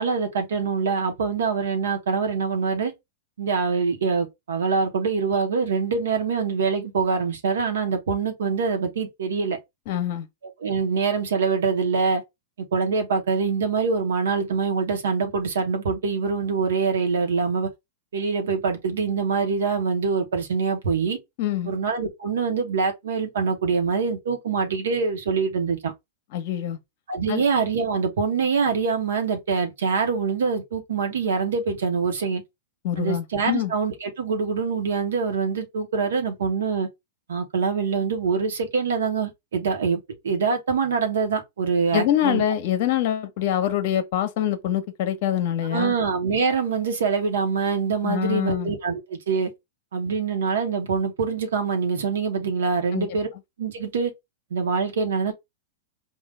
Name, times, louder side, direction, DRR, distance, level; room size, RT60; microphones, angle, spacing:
voice 1, 0.0-2.9 3.4-9.6 10.6-12.2 12.7-17.7 18.1-21.2 21.7-25.9 27.1-32.4 33.0-36.9 37.3-42.4 45.7-49.5 49.9-53.3 53.6-54.1 54.5-55.3, right 5 dB, 80° right, 1.0 m, -24 dB
voice 2, 9.9-10.3 21.4-21.7 26.3-26.8 27.3-27.4 32.8-33.7 41.9-45.9 48.0-48.7 52.9-53.1, left 11 dB, 55° left, 0.9 m, -25 dB
3.8 x 2.4 x 3.2 m
hypercardioid pair, 120°, 0 cm